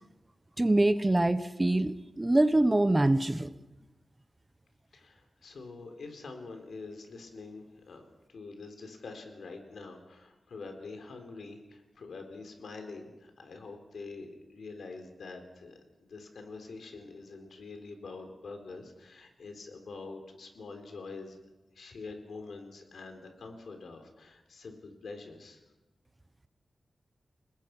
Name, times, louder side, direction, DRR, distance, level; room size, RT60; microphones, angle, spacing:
voice 1, 0.6-3.5, right 1 dB, 15° right, 13 dB, 0.8 m, -24 dB
voice 2, 4.9-21.4 21.7-25.6, left 3 dB, 90° left, 5 dB, 4.0 m, -45 dB
30.0 x 19.5 x 6.1 m, 1.0 s
wide cardioid pair, 175°, 0 cm